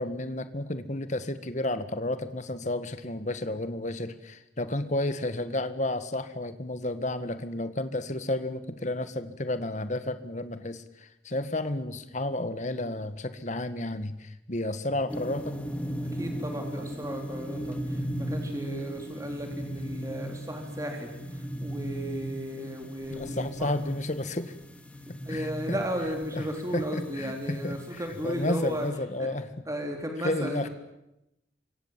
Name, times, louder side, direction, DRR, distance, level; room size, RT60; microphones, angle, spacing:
voice 1, 0.0-15.6 23.1-24.5 25.1-25.8 26.3-26.5 26.7-29.5 30.2-30.7, left 1 dB, 40° left, 11 dB, 1.7 m, -32 dB
sound 1, 15.1-28.9, equal, 5° left, 2.0 m, -37 dB
voice 2, 16.1-23.7 25.2-28.9 29.2-29.3 29.7-30.7, equal, 20° right, 3 dB, 3.6 m, -35 dB
28.0 x 24.5 x 7.6 m, 0.87 s
head